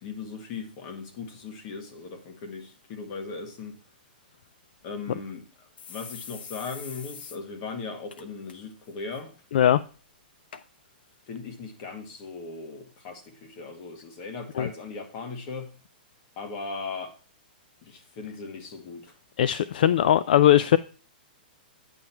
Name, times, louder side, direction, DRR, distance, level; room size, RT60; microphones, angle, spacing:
voice 1, 0.0-3.7 4.8-5.4 5.9-9.3 11.3-15.7 16.4-17.2 17.8-19.1, left 4 dB, 35° left, 1.6 m, -38 dB
sound 1, 4.8-4.9 5.3-5.4 5.8-7.4 7.7-7.8 8.1-8.5 8.9-9.2 9.9-10.0 10.5-10.6 11.4-11.5, left 6 dB, 80° left, 0.9 m, -43 dB
voice 2, 19.4-20.8, left 11 dB, 60° left, 0.4 m, -19 dB
9.0 x 5.9 x 4.4 m
hypercardioid pair, 165°, 5 cm